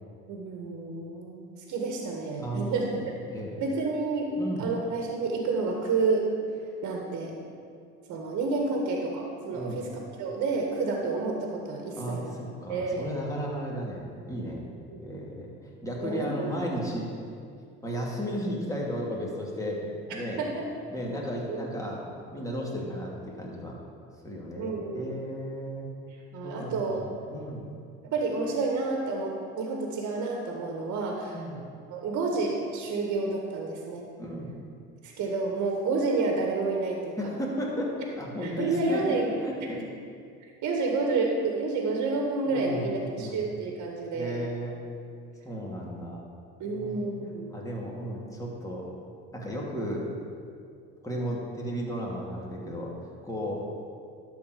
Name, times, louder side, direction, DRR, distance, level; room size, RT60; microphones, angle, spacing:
voice 1, 0.3-3.0 3.6-6.3 6.8-7.4 8.1-12.3 12.7-13.1 14.9-15.3 16.0-16.5 20.2-20.7 21.5-21.8 24.6-25.0 26.3-27.0 28.0-31.4 31.9-34.0 35.0-37.2 37.8-37.9 38.4-39.3 39.7-39.8 40.4-44.4 46.6-47.6, right 3 dB, 60° right, 1 dB, 1.8 m, -30 dB
voice 2, 2.4-2.7 3.3-3.6 4.3-4.7 9.5-9.8 12.0-14.7 15.0-15.5 15.8-17.1 17.8-20.4 20.9-22.0 22.3-23.8 24.2-25.9 26.4-27.6 31.3-31.6 34.2-34.5 37.2-39.8 42.5-43.4 44.1-44.8 45.4-46.2 46.6-47.1 47.5-48.8 49.3-50.1 51.0-52.9 53.2-53.7, equal, 10° left, -3 dB, 2.7 m, -34 dB
12.0 x 4.6 x 6.9 m, 2.3 s
hypercardioid pair, 75°, 33 cm